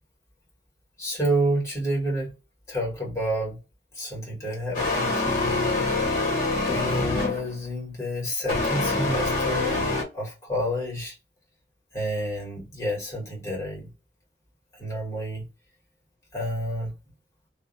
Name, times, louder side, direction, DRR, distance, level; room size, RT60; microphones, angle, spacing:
voice 1, 1.0-2.3 2.7-3.6 3.9-5.9 6.7-9.9 10.1-11.1 11.9-13.9 14.7-15.4 16.3-16.9, equal, 15° left, 1.3 m, -29 dB
sound 1, 4.7-7.6 8.5-10.0, left 2 dB, 45° left, 0.9 m, -25 dB
2.7 x 2.0 x 2.5 m
head